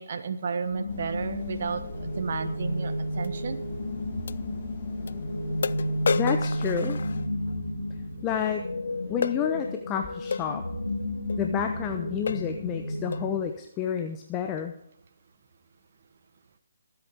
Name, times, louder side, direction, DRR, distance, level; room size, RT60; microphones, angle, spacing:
voice 1, 0.0-3.6, right 5 dB, 55° right, 7 dB, 1.0 m, -32 dB
sound 1, 0.7-13.4, left 1 dB, 80° left, 2.3 m, -32 dB
sound 2, 0.9-6.8, left 3 dB, 45° left, 2.0 m, -45 dB
sound 3, 3.2-3.3 4.3-4.4 5.1-5.2 5.6-7.6 9.2-9.4 10.3-10.5 11.3-11.4 11.8-12.0 12.3-12.6 13.1-13.3, left 5 dB, 65° left, 0.3 m, -31 dB
voice 2, 6.1-7.0 8.2-8.7 9.1-10.6 11.4-14.7, left 8 dB, 20° left, 5 dB, 0.9 m, -30 dB
22.0 x 8.2 x 3.5 m, 0.78 s
figure-of-eight pair, 145°, 0 cm